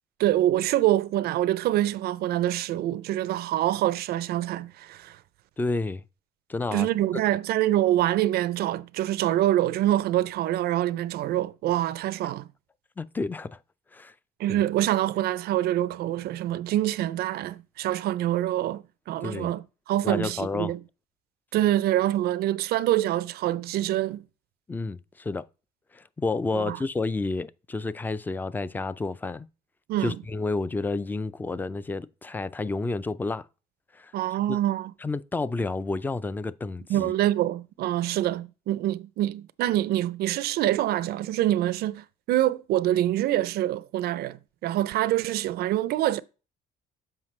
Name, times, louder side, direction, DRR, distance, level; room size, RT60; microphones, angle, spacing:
voice 1, 0.2-5.2 6.7-12.5 14.4-20.8 21.5-24.2 26.5-26.8 29.9-30.2 34.1-34.9 36.9-46.2, right 13 dB, 70° right, 0.4 m, -25 dB
voice 2, 5.6-6.0 6.5-6.9 12.2-12.3 13.0-13.6 13.9-14.1 14.5-14.6 19.2-19.5 20.0-20.8 24.7-25.4 25.9-29.5 30.0-33.5 33.9-34.1 34.5-34.6 35.0-37.1, left 3 dB, 10° left, 0.3 m, -30 dB
7.4 x 4.8 x 3.1 m
cardioid pair, 110°, 17 cm